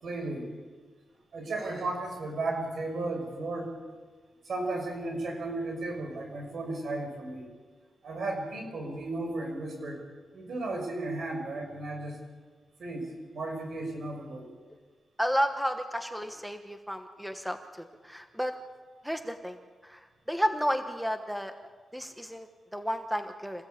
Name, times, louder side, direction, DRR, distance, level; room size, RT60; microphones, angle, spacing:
voice 1, 0.0-0.5 1.3-3.7 4.4-7.5 8.0-10.0 10.3-12.2 12.8-14.5, right 2 dB, 60° right, 3 dB, 6.6 m, -34 dB
voice 2, 15.2-18.6 19.0-20.0 20.3-21.5 21.9-23.7, equal, ahead, 7 dB, 1.2 m, -32 dB
27.5 x 16.0 x 8.6 m, 1.5 s
wide cardioid pair, 140°, 0 cm